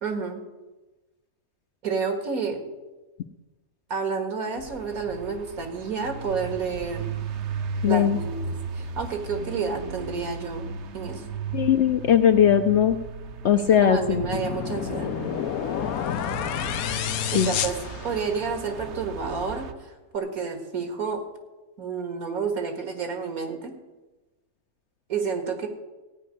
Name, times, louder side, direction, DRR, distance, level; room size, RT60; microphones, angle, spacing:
voice 1, 0.0-0.4 1.8-2.7 3.9-7.1 7.8-11.2 13.5-15.1 17.3-21.2 21.8-23.7 25.1-25.7, right 5 dB, 80° right, 6 dB, 2.2 m, -30 dB
sound 1, 4.6-19.7, right 4 dB, 55° right, 1.0 m, -36 dB
voice 2, 7.8-8.2 11.5-13.0 13.4-14.2 17.3-17.5, left 9 dB, 60° left, 7 dB, 0.8 m, -19 dB
sound 2, 14.0-18.6, left 10 dB, 85° left, 1.1 m, -30 dB
15.5 x 5.4 x 9.8 m, 1.1 s
omnidirectional pair, 1.5 m